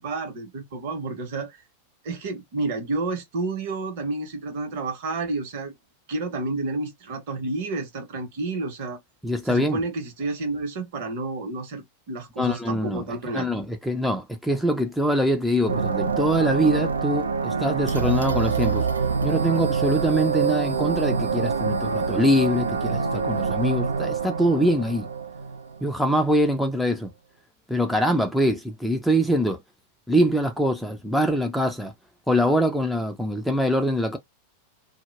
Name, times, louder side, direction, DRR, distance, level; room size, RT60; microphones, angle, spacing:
voice 1, 0.0-1.6 2.0-5.7 6.1-9.0 9.4-13.5, right 3 dB, 50° right, 0.8 m, -30 dB
voice 2, 9.2-9.8 12.4-13.1 13.3-18.9 19.2-25.1 25.8-27.1 27.7-29.6 30.1-31.9 32.3-34.2, equal, ahead, 0.4 m, -23 dB
sound 1, 15.7-26.2, right 5 dB, 75° right, 0.3 m, -26 dB
2.2 x 2.1 x 3.2 m
figure-of-eight pair, 90°, 0 cm